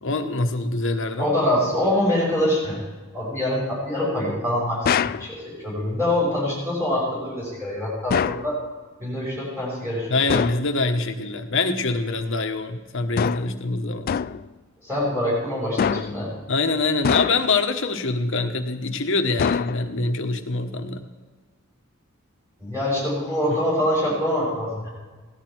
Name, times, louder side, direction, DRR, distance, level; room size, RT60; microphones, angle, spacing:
voice 1, 0.0-1.3 10.1-14.2 16.5-21.0, left 3 dB, 65° left, 5 dB, 1.2 m, -24 dB
voice 2, 1.2-2.8 3.1-8.6 9.0-10.3 14.8-16.3 22.6-24.9, left 1 dB, 15° right, -7 dB, 5.9 m, -25 dB
sound 1, 4.8-5.3 8.1-8.5 10.3-10.7 13.2-13.6 14.1-14.5 15.8-16.3 17.0-17.6 19.4-20.1, left 7 dB, 45° left, 0.3 m, -24 dB
17.0 x 12.0 x 4.6 m, 1.3 s
head